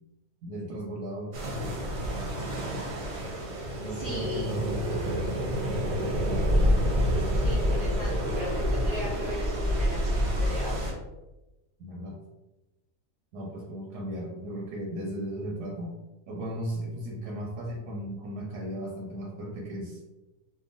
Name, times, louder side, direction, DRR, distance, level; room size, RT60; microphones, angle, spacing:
voice 1, 0.4-1.4 3.8-5.3 11.8-12.2 13.3-16.0 16.3-20.0, right 1 dB, 90° right, -2 dB, 1.2 m, -36 dB
sound 1, 1.3-10.9, equal, 60° right, 0.8 m, -28 dB
voice 2, 3.9-4.7 7.3-11.0, left 2 dB, 85° left, -7 dB, 0.5 m, -38 dB
2.9 x 2.2 x 2.5 m, 1.0 s
omnidirectional pair, 1.7 m